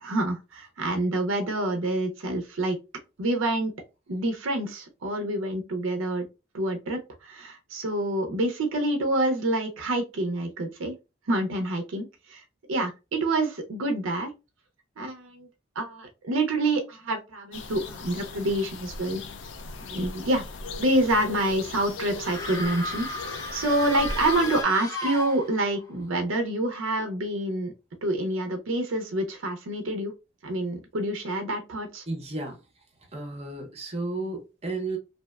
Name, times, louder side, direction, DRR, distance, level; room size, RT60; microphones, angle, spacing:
voice 1, 0.0-2.8 3.2-3.7 4.1-6.3 6.5-10.9 11.3-12.4 12.7-14.3 15.0-15.5 15.8-19.2 19.8-20.4 20.8-27.7 28.0-30.1 30.4-32.0, right 1 dB, 90° right, 0.5 m, -27 dB
sound 1, 17.5-24.6, left 3 dB, 65° left, 0.4 m, -38 dB
sound 2, 22.2-25.8, left 2 dB, 15° left, 0.5 m, -34 dB
voice 2, 32.1-32.6 33.1-35.0, right 2 dB, 30° right, 0.6 m, -33 dB
2.7 x 2.1 x 2.2 m
head